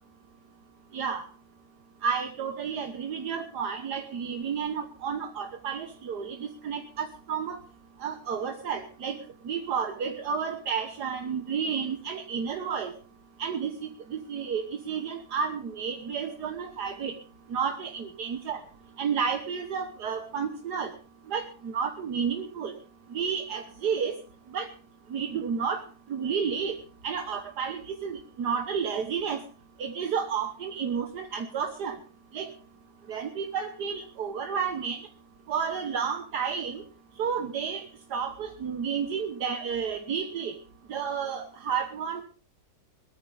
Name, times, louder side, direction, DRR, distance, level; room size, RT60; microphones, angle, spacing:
voice 1, 0.9-1.3 2.0-7.6 8.0-9.2 9.4-12.9 13.4-17.1 17.5-18.6 19.0-20.9 21.3-22.7 23.1-24.2 24.5-24.7 25.1-25.8 26.1-26.8 27.0-29.4 29.8-32.0 32.3-32.5 33.1-35.0 35.5-36.8 37.2-37.8 38.1-40.5 40.9-42.2, right 6 dB, 70° right, 5 dB, 1.8 m, -31 dB
21.5 x 13.0 x 3.5 m, 0.37 s
omnidirectional pair, 1.8 m